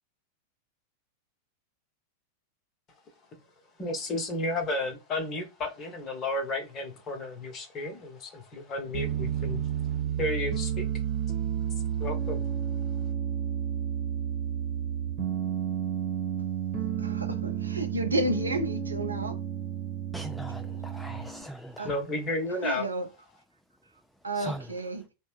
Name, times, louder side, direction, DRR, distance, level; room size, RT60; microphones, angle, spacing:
voice 1, 3.8-9.9 10.2-10.9 12.0-12.4 21.4-21.5 21.8-22.9, left 2 dB, 30° left, 1.0 m, -32 dB
Piano, 8.9-21.4, right 9 dB, 40° right, 1.0 m, -31 dB
voice 2, 17.0-19.4 21.8-21.9 22.6-23.1 24.2-25.1, right 1 dB, 80° right, 0.6 m, -31 dB
voice 3, 20.1-21.9 24.3-24.7, equal, 5° left, 0.3 m, -40 dB
3.1 x 2.1 x 3.1 m
figure-of-eight pair, 90°, 0 cm